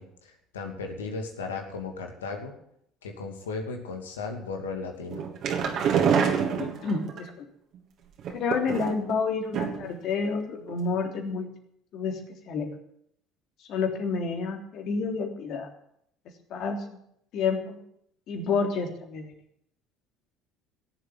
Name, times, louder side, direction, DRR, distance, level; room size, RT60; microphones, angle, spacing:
voice 1, 0.0-2.5 3.0-5.3, left 4 dB, 90° left, 3 dB, 2.6 m, -36 dB
sound 1, 5.1-7.2 8.2-9.1 9.5-10.0 10.2-10.3 10.7-10.8, right 7 dB, 55° right, 3.2 m, -26 dB
voice 2, 6.6-7.4 8.3-11.5 11.9-12.2 12.5-12.7 13.7-15.7 16.5-17.0 17.3-17.8 18.3-19.3, left 5 dB, 60° left, 3 dB, 3.4 m, -29 dB
17.0 x 7.8 x 9.6 m, 0.72 s
hypercardioid pair, 65°, 0 cm